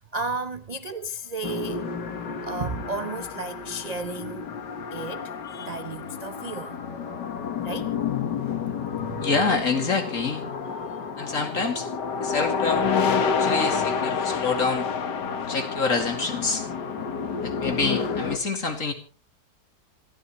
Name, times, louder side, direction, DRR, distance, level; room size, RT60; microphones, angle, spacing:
voice 1, 0.1-1.9 2.3-4.5 4.9-6.8 7.6-7.9 8.6-9.2, right 3 dB, 50° right, 0.5 m, -33 dB
sound 1, 1.4-18.4, left 6 dB, 75° left, 2.1 m, -29 dB
voice 2, 9.2-10.4 11.2-11.9 12.2-14.9 15.3-16.6 17.4-18.9, left 4 dB, 45° left, 2.8 m, -27 dB
27.0 x 13.5 x 3.1 m
omnidirectional pair, 1.9 m